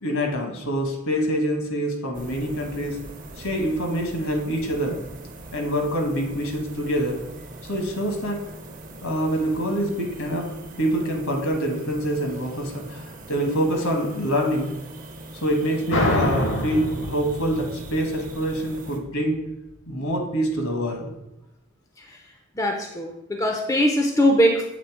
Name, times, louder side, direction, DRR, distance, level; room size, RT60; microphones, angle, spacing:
voice 1, 0.0-3.0 3.4-5.0 5.5-7.2 7.7-8.4 9.0-10.5 10.8-14.7 15.3-19.4 19.9-21.1, equal, 70° left, 3 dB, 1.3 m, -25 dB
sound 1, 2.1-19.0, right 2 dB, 35° right, 0.7 m, -41 dB
sound 2, 15.9-19.2, left 1 dB, 55° left, 0.8 m, -26 dB
voice 2, 22.6-24.6, equal, 15° left, 3 dB, 0.5 m, -21 dB
7.5 x 3.2 x 4.7 m, 0.88 s
head